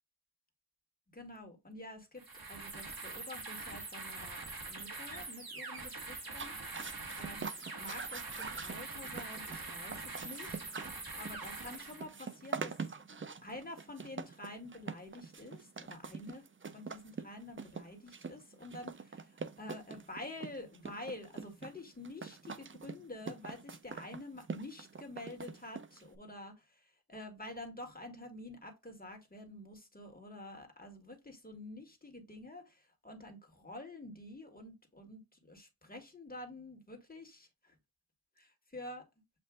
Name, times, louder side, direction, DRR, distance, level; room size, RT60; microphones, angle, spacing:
voice 1, 1.1-4.4 4.7-6.6 7.2-7.5 7.8-10.6 10.9-12.8 13.4-16.4 16.7-37.8 38.4-39.0, left 2 dB, 25° left, 1.8 m, -48 dB
sound 1, 2.2-12.1, right 3 dB, 80° right, 1.6 m, -44 dB
sound 2, 6.3-26.2, right 5 dB, 35° right, 0.5 m, -45 dB
7.6 x 2.5 x 2.4 m
wide cardioid pair, 60°, 36 cm